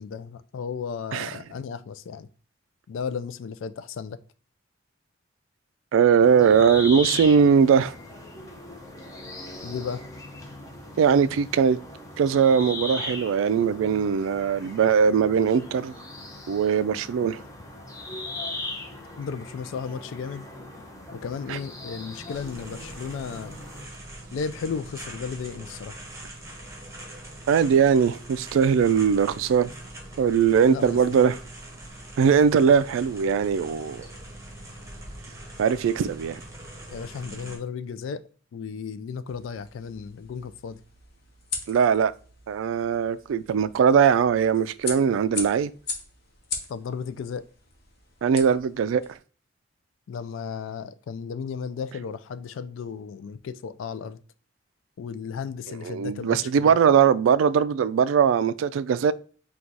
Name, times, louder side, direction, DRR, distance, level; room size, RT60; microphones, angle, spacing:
voice 1, 0.0-2.3 2.9-4.2 9.6-10.0 19.2-20.5 21.1-23.6 24.3-26.0 30.7-31.2 36.9-38.2 38.5-40.8 46.7-47.4 50.1-54.2 55.0-56.8, left 6 dB, 75° left, 0.3 m, -34 dB
voice 2, 5.9-7.9 11.0-11.8 12.2-15.9 16.5-17.4 21.5-21.6 27.5-29.7 30.2-31.4 32.2-34.1 35.6-36.4 41.7-42.1 42.5-45.7 48.2-49.0 55.8-59.1, right 7 dB, 80° right, 0.3 m, -20 dB
sound 1, 6.2-23.8, left 2 dB, 15° left, 0.7 m, -39 dB
sound 2, 22.3-37.6, right 1 dB, 15° right, 1.2 m, -43 dB
sound 3, 39.3-49.2, left 4 dB, 55° left, 0.9 m, -39 dB
4.5 x 2.3 x 3.9 m
head